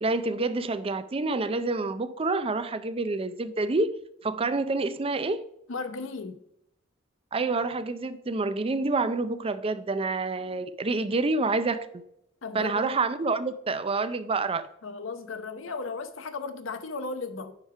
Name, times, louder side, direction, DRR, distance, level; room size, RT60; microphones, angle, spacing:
voice 1, 0.0-4.0 4.2-5.4 7.3-12.0 12.5-14.7, right 3 dB, 30° right, 0.5 m, -28 dB
voice 2, 5.7-6.4 12.4-12.9 14.8-17.5, left 4 dB, 80° left, 0.8 m, -35 dB
9.6 x 3.5 x 4.7 m
head